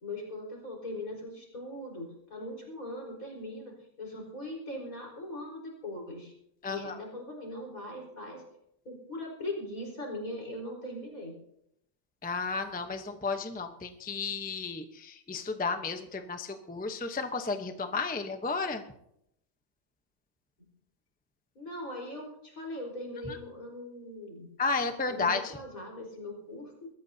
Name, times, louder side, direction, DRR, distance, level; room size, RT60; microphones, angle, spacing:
voice 1, 0.0-6.3 6.7-8.4 8.8-11.4 21.5-24.5 25.1-26.9, left 1 dB, 75° left, -1 dB, 4.9 m, -40 dB
voice 2, 6.6-7.0 12.2-18.8 23.3-23.4 24.6-25.6, left 4 dB, 10° left, 7 dB, 0.7 m, -33 dB
22.5 x 14.0 x 2.8 m, 0.76 s
omnidirectional pair, 1.5 m